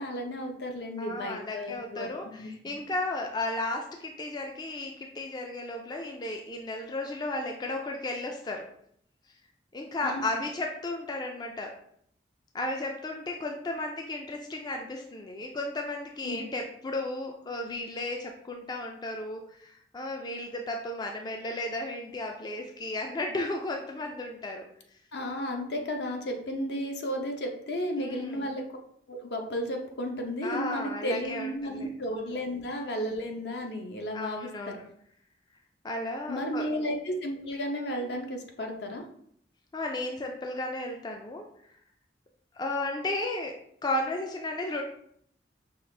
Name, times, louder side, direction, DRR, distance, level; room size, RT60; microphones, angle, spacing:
voice 1, 0.0-2.1 2.4-2.8 10.0-10.2 16.2-16.4 25.1-28.6 29.1-34.8 36.3-39.0, equal, 65° left, 3 dB, 0.7 m, -33 dB
voice 2, 1.0-8.7 9.7-11.8 12.5-24.7 28.0-28.6 30.4-31.9 32.2-32.4 34.1-34.9 35.8-36.7 39.7-41.5 42.6-44.8, left 2 dB, 25° left, 2 dB, 0.3 m, -34 dB
5.6 x 2.4 x 3.3 m, 0.67 s
head